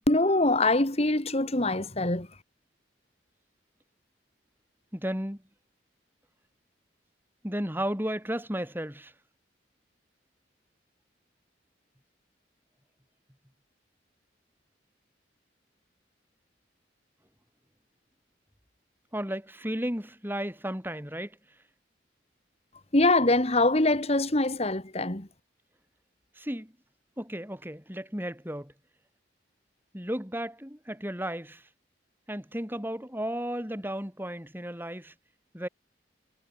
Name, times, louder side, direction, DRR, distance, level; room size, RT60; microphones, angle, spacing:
voice 1, 0.1-2.3 22.9-25.3, left 2 dB, 35° left, 2.3 m, -24 dB
voice 2, 4.9-5.4 7.4-9.1 19.1-21.4 26.4-26.7 27.2-28.7 29.9-31.7 32.3-35.1 35.5-35.7, equal, 10° right, 8.0 m, -34 dB
head